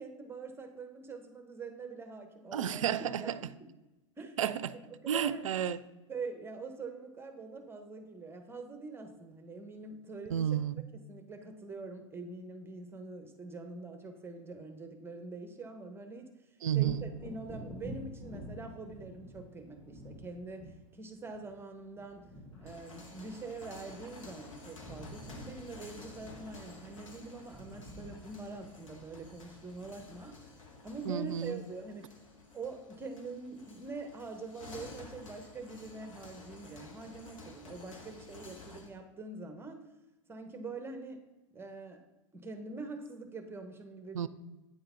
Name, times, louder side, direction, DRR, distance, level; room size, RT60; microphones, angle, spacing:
voice 1, 0.0-2.8 3.2-3.7 4.2-4.4 4.7-5.5 6.1-10.6 10.9-22.3 22.6-30.5 30.8-32.1 32.5-39.9 40.3-41.2 41.5-42.0 42.3-44.3, right 3 dB, 15° right, 6 dB, 0.9 m, -44 dB
voice 2, 2.5-3.4 4.4-4.7 5.1-5.8 10.3-10.8 16.6-17.1 31.1-31.6 44.1-44.3, right 10 dB, 75° right, 17 dB, 0.4 m, -31 dB
Wind / Thunder, 16.8-24.3 24.6-31.8 32.2-32.4, equal, 10° left, 1.7 m, -50 dB
sound 1, 22.5-39.0, left 3 dB, 75° left, 1.5 m, -52 dB
8.9 x 3.8 x 5.6 m, 1.0 s
hypercardioid pair, 105°, 17 cm